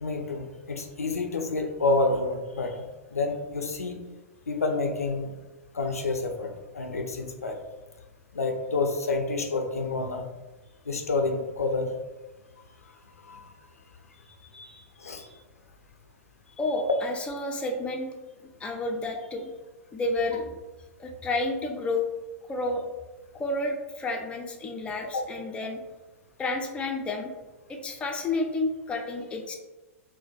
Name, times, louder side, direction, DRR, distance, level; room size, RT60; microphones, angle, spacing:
voice 1, 0.0-2.8 3.1-4.0 4.5-5.3 5.7-7.6 8.3-10.3 10.9-11.9 13.2-13.5 15.0-15.2 25.1-25.2, left 3 dB, 80° left, 4 dB, 0.4 m, -28 dB
voice 2, 14.2-15.3 16.6-18.1 18.6-19.5 19.9-20.5 21.0-22.1 22.5-22.8 23.3-25.8 26.4-27.3 27.7-29.5, left 2 dB, 15° left, 2 dB, 0.4 m, -31 dB
3.9 x 2.1 x 2.3 m, 1.1 s
figure-of-eight pair, 100°, 8 cm